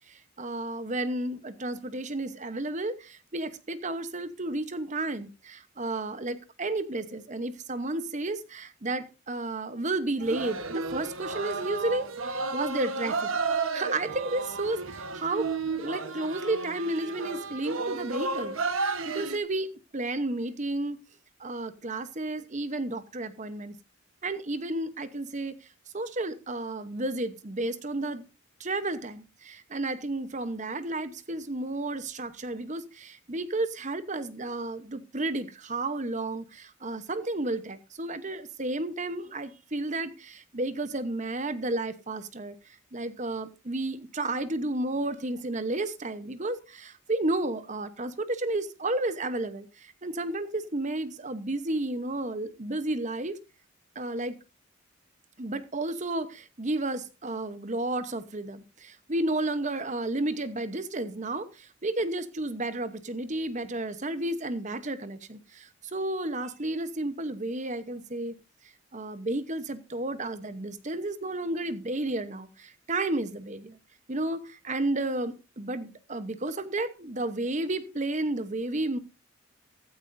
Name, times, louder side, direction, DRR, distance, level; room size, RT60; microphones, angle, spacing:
voice 1, 0.1-13.3 13.7-21.0 21.4-23.8 24.2-25.6 25.9-28.2 28.6-53.4 53.9-54.4 55.4-68.4 68.9-73.8 74.1-79.0, right 2 dB, 35° right, 12 dB, 0.9 m, -32 dB
sound 1, 10.2-19.4, right 4 dB, 70° right, 1.2 m, -32 dB
15.0 x 13.0 x 2.6 m, 0.30 s
head